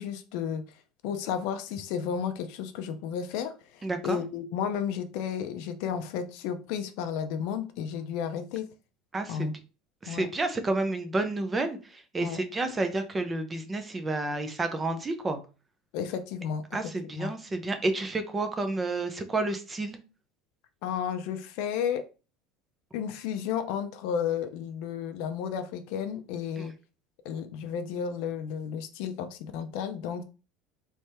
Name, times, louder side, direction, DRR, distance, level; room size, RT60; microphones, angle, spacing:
voice 1, 0.0-8.7 9.3-9.5 10.1-10.3 12.2-12.4 15.9-16.6 17.2-17.3 20.8-22.1 22.9-26.7 27.2-30.2, left 8 dB, 60° left, 8 dB, 0.6 m, -33 dB
voice 2, 3.8-4.2 9.1-9.5 10.0-15.4 16.7-20.0 26.6-26.7, right 2 dB, 15° right, 8 dB, 0.6 m, -30 dB
3.4 x 3.3 x 4.3 m, 0.33 s
cardioid pair, 170°, 0 cm